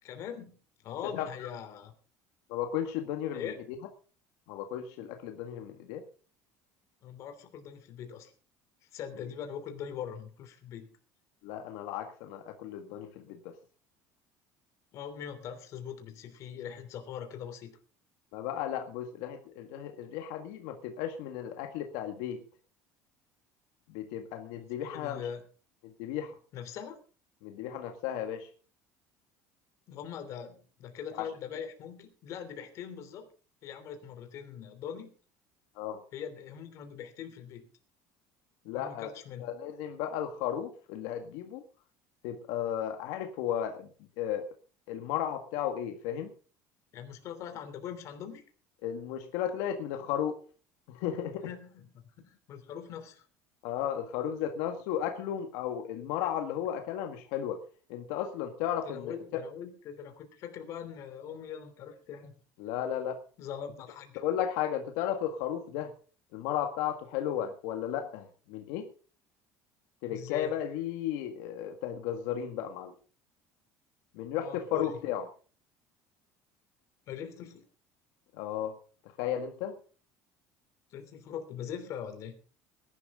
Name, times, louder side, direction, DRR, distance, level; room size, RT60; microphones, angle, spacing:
voice 1, 0.0-0.6 0.8-1.9 3.3-3.6 7.0-8.3 8.9-10.9 14.9-17.8 24.5-25.4 26.5-27.0 29.9-33.3 33.6-35.1 36.1-37.7 38.7-39.5 46.9-48.4 51.4-51.9 52.2-53.2 58.8-62.4 63.4-64.2 70.1-70.6 74.3-75.1 77.1-77.6 80.9-82.3, left 8 dB, 50° left, 7 dB, 3.1 m, -42 dB
voice 2, 2.5-3.5 4.5-6.1 11.4-13.5 18.3-22.4 23.9-25.2 26.0-26.3 27.4-28.5 31.1-31.3 35.8-36.0 38.7-39.1 39.4-41.6 42.2-43.9 44.2-44.5 44.9-46.3 48.8-50.4 50.9-51.5 53.6-57.6 57.9-59.4 62.6-63.2 64.2-65.9 66.3-68.9 70.0-72.9 74.1-75.2 78.3-78.8 79.2-79.7, left 10 dB, 80° left, 5 dB, 1.7 m, -34 dB
19.5 x 11.5 x 3.7 m, 0.38 s
cardioid pair, 160°, 7 cm